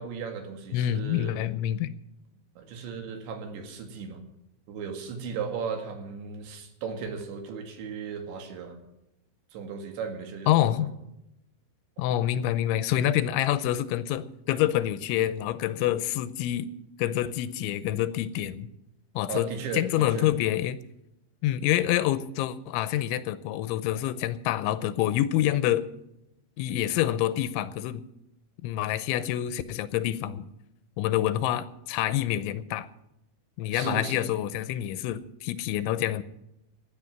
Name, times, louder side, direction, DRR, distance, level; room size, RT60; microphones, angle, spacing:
voice 1, 0.0-1.4 2.6-4.2 4.7-8.8 9.5-10.7 19.3-20.3 33.7-34.4, right 5 dB, 75° right, 5 dB, 4.3 m, -36 dB
voice 2, 0.7-1.9 10.5-10.9 12.0-16.7 17.0-18.7 19.2-20.8 21.4-25.9 26.6-28.0 28.6-30.5 31.0-32.9 33.6-36.2, left 12 dB, 90° left, 14 dB, 3.1 m, -27 dB
16.0 x 11.0 x 5.9 m, 0.87 s
omnidirectional pair, 5.3 m